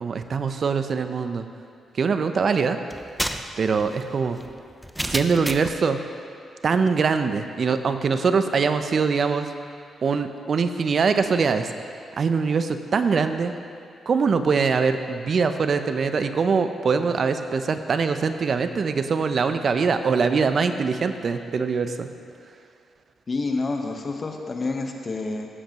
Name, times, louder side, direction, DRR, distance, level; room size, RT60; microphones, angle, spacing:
voice 1, 0.0-1.4 2.0-2.8 3.6-4.4 5.1-6.0 6.6-9.5 10.0-11.7 12.2-13.5 14.1-22.1, right 5 dB, 55° right, 9 dB, 0.6 m, -23 dB
sound 1, 2.9-5.8, equal, 5° right, 0.6 m, -31 dB
voice 2, 23.3-25.5, left 3 dB, 45° left, 3 dB, 1.2 m, -28 dB
16.0 x 7.3 x 3.0 m, 2.3 s
supercardioid pair, 50°, 0 cm